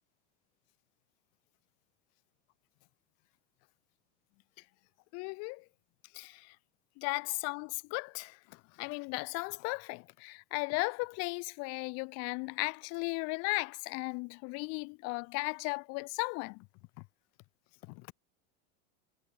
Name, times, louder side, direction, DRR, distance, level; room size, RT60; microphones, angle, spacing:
voice 1, 5.1-5.6 6.1-6.6 7.0-16.7 17.9-18.1, left 31 dB, 45° left, 1.0 m, -36 dB
supercardioid pair, 155°, 34 cm